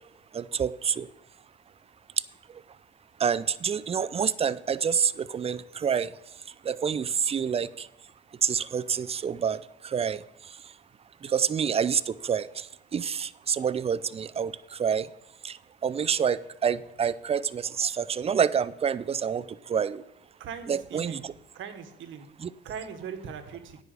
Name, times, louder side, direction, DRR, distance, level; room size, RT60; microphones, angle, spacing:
voice 1, 0.3-1.1 3.2-6.1 6.7-7.9 8.4-9.6 9.8-10.2 11.2-12.6 12.9-14.5 14.8-15.1 15.4-15.6 15.8-19.4 19.7-20.0 20.7-21.3 22.4-22.5, right 7 dB, 30° right, 17 dB, 0.4 m, -27 dB
voice 2, 20.4-21.2 21.5-22.3 22.6-23.8, right 7 dB, 75° right, 8 dB, 1.2 m, -40 dB
9.9 x 4.9 x 7.9 m, 0.89 s
cardioid pair, 90°, 20 cm